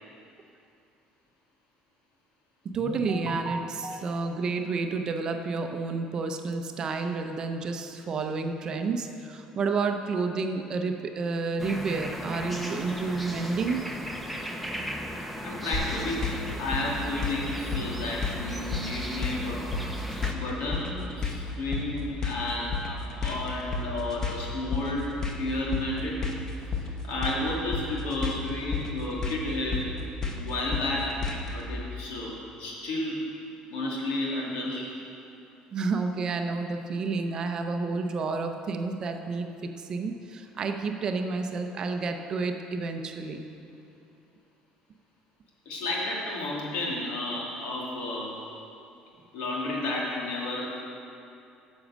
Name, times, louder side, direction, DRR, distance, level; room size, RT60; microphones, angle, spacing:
voice 1, 2.6-13.9 35.7-43.4, right 4 dB, 30° right, 5 dB, 0.6 m, -30 dB
sound 1, 11.6-20.3, equal, ahead, 0.7 m, -37 dB
voice 2, 15.4-16.3 16.6-19.7 20.3-25.1 25.4-26.2 27.0-29.8 30.3-31.2 31.5-33.2 33.7-34.9 45.6-48.4 49.3-50.8, left 2 dB, 75° left, -4 dB, 2.7 m, -32 dB
sound 2, 15.7-31.6, left 4 dB, 25° left, 1.0 m, -32 dB
10.0 x 6.3 x 7.3 m, 2.7 s
cardioid pair, 155°, 2 cm